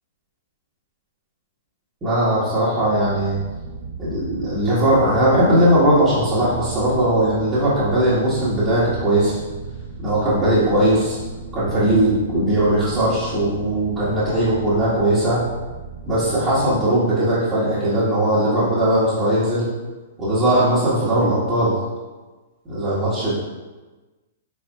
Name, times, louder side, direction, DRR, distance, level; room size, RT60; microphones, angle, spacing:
voice 1, 2.0-3.4 4.0-9.3 10.0-11.2 11.5-15.4 16.0-19.7 20.2-21.7 22.7-23.3, right 1 dB, 15° right, -12 dB, 1.5 m, -19 dB
sound 1, 2.7-16.7, right 3 dB, 85° left, 0.9 m, -36 dB
4.6 x 4.6 x 2.3 m, 1.2 s
figure-of-eight pair, 105°, 0 cm